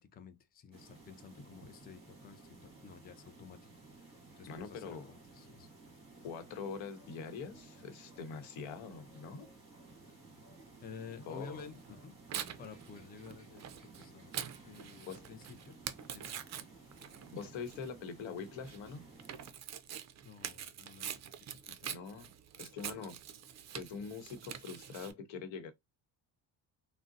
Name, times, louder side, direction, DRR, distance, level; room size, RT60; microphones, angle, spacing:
voice 1, 0.0-3.6 3.9-5.0 5.3-5.7 10.8-12.1 12.6-13.7 14.0-15.8 16.1-16.3 20.2-21.9, left 6 dB, 20° left, 0.4 m, -52 dB
sound 1, 0.7-19.5, right 3 dB, 15° right, 1.8 m, -56 dB
voice 2, 4.5-5.1 6.2-9.5 11.3-11.7 15.1-15.3 17.3-19.0 21.9-22.3 22.6-23.2 23.7-25.7, left 5 dB, 85° left, 0.9 m, -44 dB
Tearing, 11.6-25.1, right 9 dB, 40° right, 0.4 m, -45 dB
3.7 x 2.1 x 2.5 m
cardioid pair, 125°, 45 cm